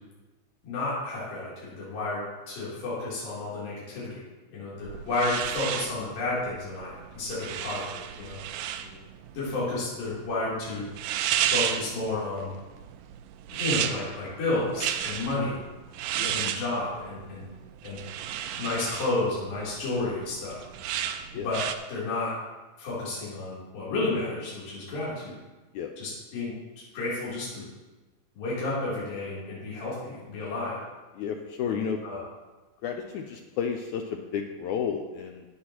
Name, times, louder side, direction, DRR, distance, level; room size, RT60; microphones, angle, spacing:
voice 1, 0.6-4.2 4.5-7.9 8.2-8.4 9.3-10.9 11.5-12.5 13.6-15.6 16.3-17.5 17.8-18.0 18.6-20.6 21.3-22.3 22.8-25.3 26.0-26.5 26.9-27.6 28.3-30.8 31.7-31.8 32.0-32.2, left 2 dB, 70° left, -9 dB, 5.0 m, -31 dB
sound 1, 4.8-21.8, right 10 dB, 80° right, 2.1 m, -33 dB
voice 2, 31.1-32.0 32.8-35.4, left 7 dB, 90° left, 3 dB, 1.7 m, -32 dB
14.5 x 9.5 x 2.9 m, 1.2 s
omnidirectional pair, 4.2 m